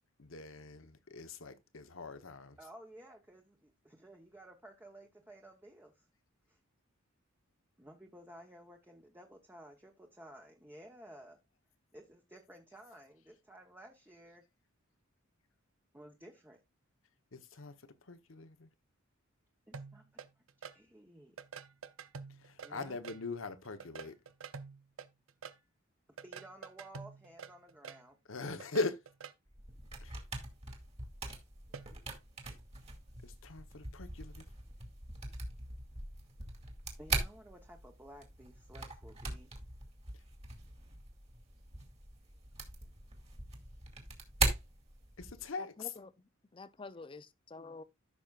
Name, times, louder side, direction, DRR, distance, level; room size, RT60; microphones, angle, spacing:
voice 1, 0.2-2.6 17.3-17.7 18.1-18.7 22.4-24.2 28.3-29.0 30.0-30.1 33.2-34.4 45.2-45.7, left 3 dB, 65° left, 1.0 m, -41 dB
voice 2, 2.6-6.0 6.5-6.6 7.8-11.4 11.9-14.4 15.9-16.6 19.7-20.2 20.7-21.4 22.6-23.0 26.2-28.2 37.0-39.5, right 1 dB, 10° right, 1.0 m, -55 dB
sound 1, 19.7-20.7 21.4-23.2 23.6-25.5 26.2-28.0 28.4-29.3 31.7-31.9, right 5 dB, 70° right, 0.8 m, -47 dB
sound 2, 29.5-45.5, right 3 dB, 30° right, 2.1 m, -41 dB
voice 3, 45.6-47.8, left 3 dB, 25° left, 0.6 m, -49 dB
14.0 x 6.1 x 2.4 m
head